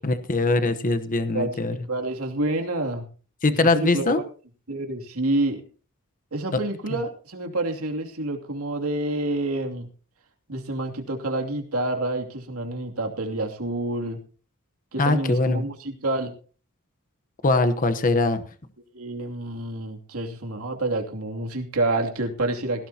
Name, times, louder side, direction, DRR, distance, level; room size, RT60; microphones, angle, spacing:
voice 1, 0.0-1.7 3.4-4.2 15.0-15.6 17.4-18.4, left 2 dB, 40° left, 10 dB, 1.0 m, -22 dB
voice 2, 1.3-3.1 3.5-4.1 4.7-5.6 6.3-9.9 10.5-14.2 14.9-16.3 18.9-22.9, right 2 dB, 80° right, 2 dB, 2.7 m, -28 dB
18.0 x 16.0 x 2.9 m, 0.39 s
head